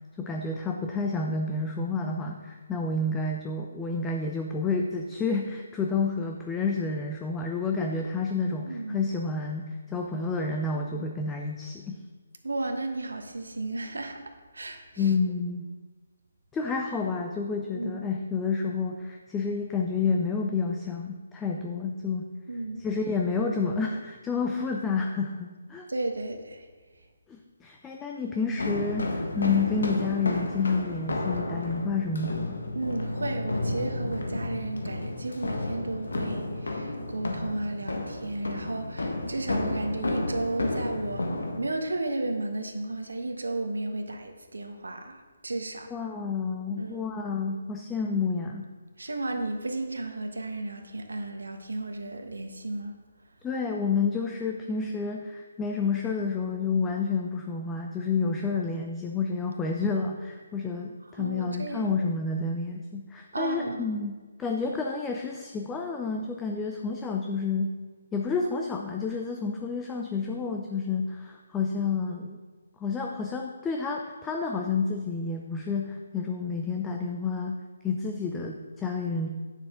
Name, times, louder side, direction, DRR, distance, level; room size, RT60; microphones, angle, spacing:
voice 1, 0.2-12.0 15.0-15.7 16.5-22.3 22.8-25.9 27.3-32.6 45.9-48.7 53.4-67.8 68.1-72.4 72.8-77.6 77.8-79.3, left 4 dB, 10° left, 1 dB, 0.5 m, -30 dB
voice 2, 8.6-9.0 10.9-11.1 12.4-14.2 14.5-15.1 17.7-18.0 22.5-22.8 25.9-26.7 32.7-41.3 41.6-45.9 46.8-47.0 49.0-52.9 61.1-61.9 63.3-63.9, right 2 dB, 85° right, 4 dB, 1.1 m, -33 dB
sound 1, 28.6-41.6, left 2 dB, 80° left, 1.5 m, -32 dB
9.5 x 6.7 x 3.8 m, 1.4 s
figure-of-eight pair, 150°, 0 cm